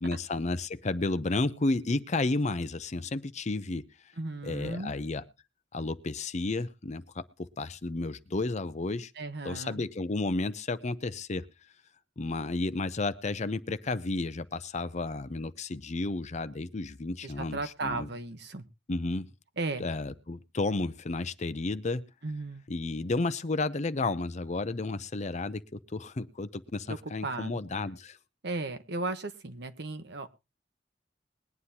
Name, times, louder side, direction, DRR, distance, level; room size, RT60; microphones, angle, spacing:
voice 1, 0.0-3.8 4.4-5.2 5.7-9.1 9.4-11.5 12.2-18.1 18.9-19.3 19.8-22.1 22.7-28.2, left 2 dB, 40° left, 0.6 m, -32 dB
voice 2, 4.2-4.9 9.2-9.8 17.2-18.6 19.6-19.8 22.2-22.6 27.2-27.6 28.4-30.3, right 3 dB, 65° right, 1.1 m, -35 dB
21.5 x 9.6 x 2.8 m
head